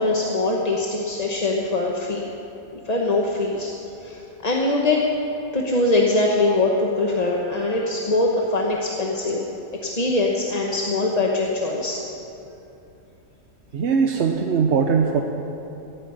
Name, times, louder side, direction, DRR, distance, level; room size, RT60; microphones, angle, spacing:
voice 1, 0.0-2.2 2.8-3.7 4.0-5.0 5.5-9.5 9.8-12.0, left 2 dB, 30° left, -1 dB, 1.0 m, -22 dB
voice 2, 13.7-15.2, right 6 dB, 50° right, 3 dB, 0.9 m, -20 dB
16.0 x 9.2 x 8.9 m, 2.8 s
omnidirectional pair, 1.7 m